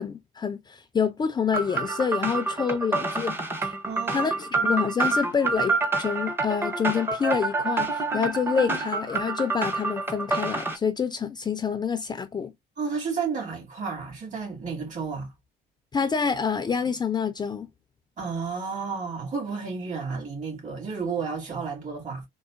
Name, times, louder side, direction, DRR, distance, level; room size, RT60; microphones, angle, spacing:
voice 1, 0.0-3.4 3.6-3.7 4.1-12.5 15.9-17.7, left 6 dB, 25° left, 0.4 m, -27 dB
sound 1, 1.5-10.8, right 3 dB, 15° right, 0.7 m, -27 dB
voice 2, 3.9-4.3 4.6-4.7 12.8-15.3 18.2-22.2, right 5 dB, 45° right, 2.3 m, -32 dB
3.8 x 2.4 x 2.4 m
cardioid pair, 110°, 17 cm